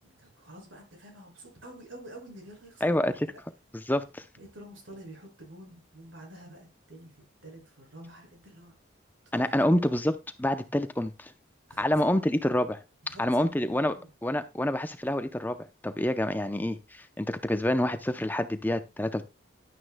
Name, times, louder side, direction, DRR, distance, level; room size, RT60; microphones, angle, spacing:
voice 1, 0.0-3.2 4.4-8.7 9.3-9.7 11.7-12.3 13.0-14.1, right 1 dB, 75° right, 0 dB, 6.0 m, -48 dB
voice 2, 2.8-3.3 3.7-4.2 9.3-11.3 11.8-12.8 13.1-13.9 14.2-19.2, left 1 dB, 10° left, 10 dB, 0.6 m, -27 dB
11.0 x 9.7 x 2.2 m, 0.27 s
head